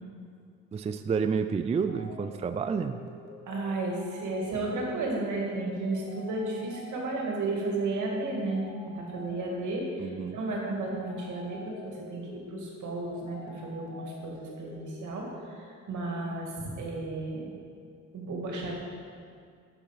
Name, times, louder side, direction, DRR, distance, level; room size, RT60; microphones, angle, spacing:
voice 1, 0.7-3.0 10.0-10.4, right 6 dB, 20° right, 9 dB, 0.3 m, -29 dB
sound 1, 1.9-15.4, left 2 dB, 70° left, 1.5 m, -48 dB
voice 2, 3.5-17.5 18.1-18.8, right 2 dB, 75° right, -1 dB, 2.1 m, -33 dB
7.4 x 6.9 x 5.8 m, 2.3 s
cardioid pair, 90°, 30 cm